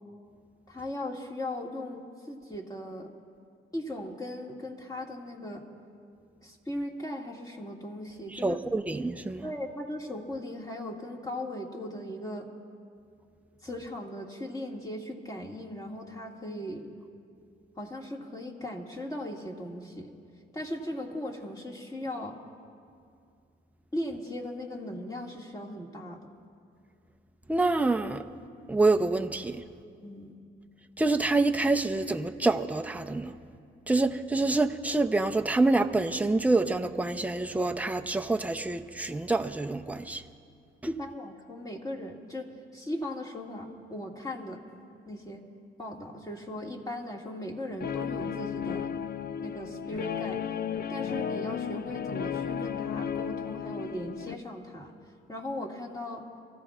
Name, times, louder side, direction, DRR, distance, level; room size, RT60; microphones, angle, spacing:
voice 1, 0.7-3.1 3.7-5.6 6.4-8.6 9.4-12.5 13.6-16.8 17.8-20.1 20.5-22.4 23.9-26.2 30.0-30.4 40.9-44.6 45.1-45.4 45.8-48.9 49.4-50.4 50.9-54.9 55.3-56.2, left 1 dB, 20° left, 2.1 m, -38 dB
voice 2, 8.3-9.5 27.5-28.2 28.7-29.6 31.0-33.3 33.9-40.2, right 2 dB, 5° right, 0.7 m, -26 dB
Guitar, 47.8-54.3, left 8 dB, 50° left, 0.5 m, -34 dB
30.0 x 15.0 x 2.5 m
cardioid pair, 90°, 20 cm